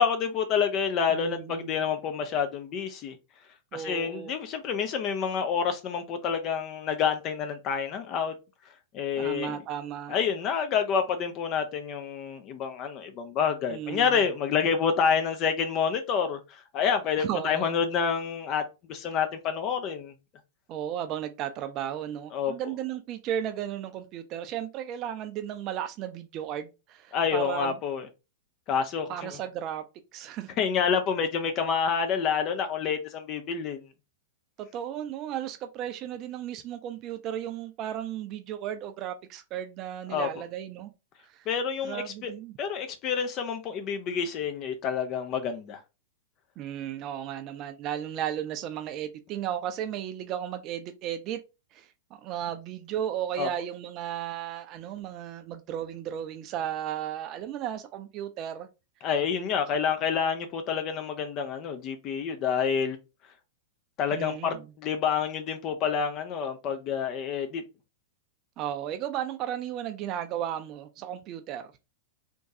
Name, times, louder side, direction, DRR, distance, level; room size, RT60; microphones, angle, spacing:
voice 1, 0.0-3.2 3.7-8.3 8.9-9.6 10.1-18.6 18.9-20.1 22.3-22.5 27.1-28.1 28.7-29.4 30.6-33.8 40.1-40.3 41.5-42.3 42.6-45.8 53.4-53.5 59.0-63.0 64.0-67.6, left 7 dB, 35° left, 0.5 m, -28 dB
voice 2, 1.1-1.8 3.7-4.3 9.2-10.2 13.7-14.3 17.2-17.9 20.7-27.8 29.1-29.8 30.1-30.5 34.6-40.9 41.2-41.5 41.8-42.5 46.6-51.4 51.7-58.7 64.1-64.7 68.6-71.7, right 10 dB, 35° right, 0.4 m, -35 dB
3.5 x 3.0 x 2.6 m
figure-of-eight pair, 95°, 0 cm